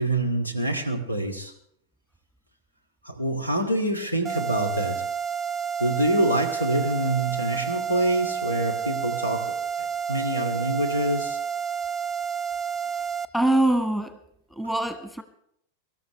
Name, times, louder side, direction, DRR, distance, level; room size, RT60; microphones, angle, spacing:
voice 1, 0.0-1.5 3.0-5.0 5.8-9.5 10.1-11.4, right 1 dB, 85° left, 6 dB, 2.4 m, -25 dB
sound 1, 4.2-13.3, right 7 dB, 15° right, 0.9 m, -30 dB
voice 2, 13.3-14.2 14.5-15.2, right 1 dB, 5° left, 9 dB, 1.6 m, -23 dB
24.5 x 13.5 x 3.3 m, 0.68 s
figure-of-eight pair, 90°, 0 cm